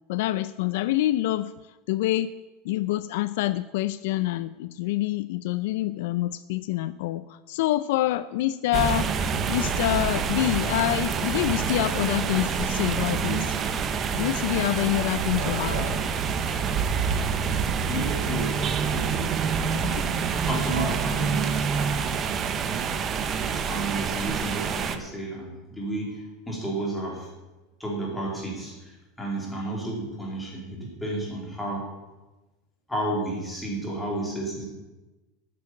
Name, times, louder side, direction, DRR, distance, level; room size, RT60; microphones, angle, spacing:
voice 1, 0.1-1.5 1.9-2.3 2.6-9.1 9.5-13.5 14.1-15.9 19.8-20.0, left 15 dB, 65° left, 15 dB, 0.4 m, -26 dB
sound 1, 8.7-25.0, right 6 dB, 25° right, 0.7 m, -27 dB
Dog / Cat, 13.9-21.0, right 3 dB, 60° right, 3.5 m, -42 dB
voice 2, 17.9-19.6 20.5-22.1 23.4-27.3 27.8-31.9 32.9-34.6, right 1 dB, 5° left, -3 dB, 2.8 m, -32 dB
9.7 x 8.5 x 8.5 m, 1.1 s
supercardioid pair, 175°, 0 cm